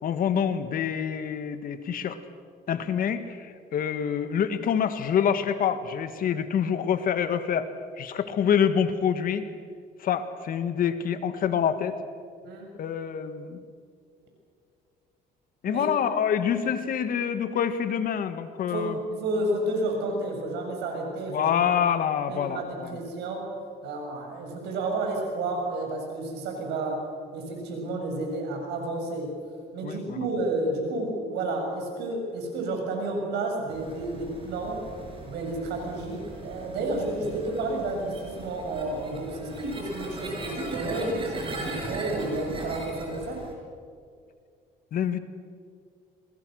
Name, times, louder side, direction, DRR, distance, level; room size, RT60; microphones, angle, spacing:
voice 1, 0.0-2.2 2.7-7.7 8.0-9.5 10.0-12.0 12.8-13.6 15.6-19.0 21.3-23.0 29.8-30.3 44.9-45.2, left 8 dB, 55° left, 10 dB, 1.8 m, -26 dB
voice 2, 18.7-21.7 22.3-23.4 23.8-27.0 27.3-29.3 29.7-34.9 35.2-43.4, right 2 dB, 85° right, 2 dB, 7.1 m, -31 dB
sound 1, 33.7-43.5, right 2 dB, 30° right, 6.4 m, -39 dB
27.5 x 21.5 x 6.5 m, 2.2 s
cardioid pair, 110°, 17 cm